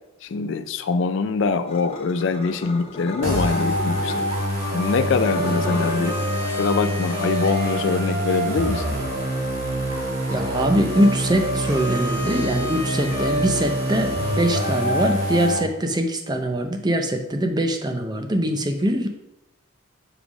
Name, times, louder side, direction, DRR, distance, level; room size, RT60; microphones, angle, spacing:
voice 1, 0.2-4.2 4.7-6.2 6.4-9.0, left 4 dB, 55° left, 11 dB, 0.4 m, -23 dB
sound 1, 1.7-4.5 5.0-6.3, left 2 dB, 25° left, 0.9 m, -34 dB
sound 2, 3.2-15.6, equal, 60° right, 1.7 m, -25 dB
voice 2, 10.3-19.1, equal, 20° right, 5 dB, 0.6 m, -22 dB
7.3 x 3.4 x 4.9 m, 0.91 s
head